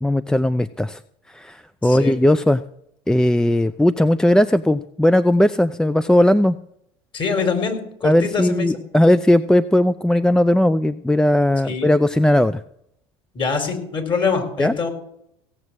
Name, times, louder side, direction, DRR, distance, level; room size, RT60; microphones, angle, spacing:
voice 1, 0.0-1.0 1.3-2.6 3.1-6.6 8.0-12.6 14.6-14.7, left 1 dB, 5° left, 15 dB, 0.4 m, -17 dB
voice 2, 1.8-2.2 7.1-8.7 11.7-11.9 13.3-14.9, left 5 dB, 35° left, 6 dB, 4.2 m, -24 dB
16.5 x 7.3 x 8.0 m, 0.76 s
supercardioid pair, 95°, 14 cm